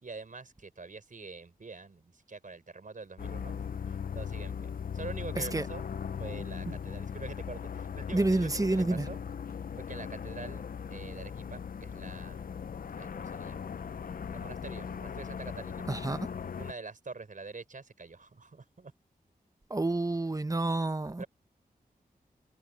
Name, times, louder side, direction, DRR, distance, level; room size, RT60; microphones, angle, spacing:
voice 1, 0.0-5.9 6.2-9.2 9.8-12.5 13.0-13.7 14.3-15.9 16.6-18.9 21.2-21.3, right 4 dB, 55° right, 4.6 m, -45 dB
sound 1, 3.2-16.7, left 7 dB, 65° left, 0.6 m, -39 dB
voice 2, 5.4-5.7 8.1-9.1 15.9-16.3 19.7-21.2, right 2 dB, 20° right, 1.0 m, -29 dB
wide cardioid pair, 65°, 16 cm